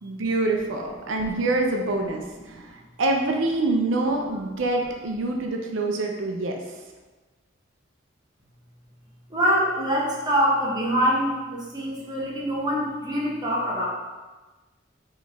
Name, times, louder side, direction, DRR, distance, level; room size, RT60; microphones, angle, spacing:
voice 1, 0.0-2.6 3.0-6.6, right 2 dB, 80° right, 2 dB, 0.5 m, -25 dB
voice 2, 9.3-13.9, equal, 20° right, -4 dB, 0.7 m, -24 dB
4.3 x 3.0 x 3.4 m, 1.2 s
head